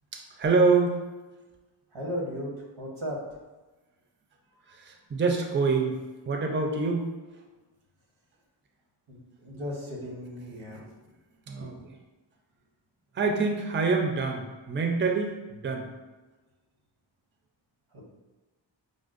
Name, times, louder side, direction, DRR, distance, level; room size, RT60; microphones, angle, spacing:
voice 1, 0.1-1.0 4.7-7.1 11.5-11.7 13.1-15.9, right 4 dB, 25° right, 3 dB, 0.4 m, -26 dB
voice 2, 1.9-3.2 9.1-11.0 11.6-11.8 17.9-18.0, equal, 90° right, -3 dB, 1.0 m, -36 dB
5.1 x 2.1 x 2.4 m, 1.2 s
wide cardioid pair, 50°, 46 cm